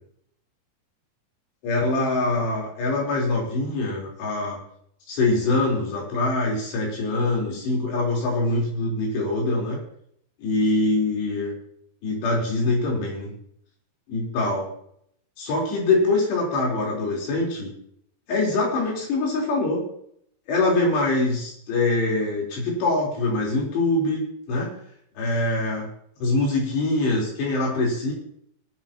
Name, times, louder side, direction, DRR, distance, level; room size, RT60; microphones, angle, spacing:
voice 1, 1.6-4.6 5.1-9.8 10.4-11.5 12.0-13.3 14.1-14.7 15.4-17.7 18.3-19.9 20.5-24.2 24.5-24.8 25.2-25.9 26.2-28.1, left 2 dB, 85° left, -2 dB, 6.1 m, -24 dB
23.0 x 9.8 x 2.9 m, 0.69 s
omnidirectional pair, 4.8 m